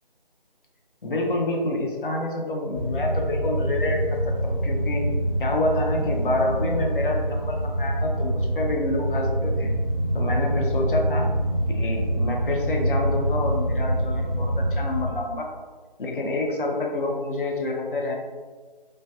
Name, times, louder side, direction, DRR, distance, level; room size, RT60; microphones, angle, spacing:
voice 1, 1.0-5.0 5.4-9.7 10.1-11.3 11.7-15.5 16.0-18.1, left 2 dB, 65° left, 0 dB, 0.6 m, -27 dB
sound 1, 2.7-15.0, right 1 dB, 25° right, 0.5 m, -25 dB
2.3 x 2.1 x 2.6 m, 1.5 s
figure-of-eight pair, 170°, 29 cm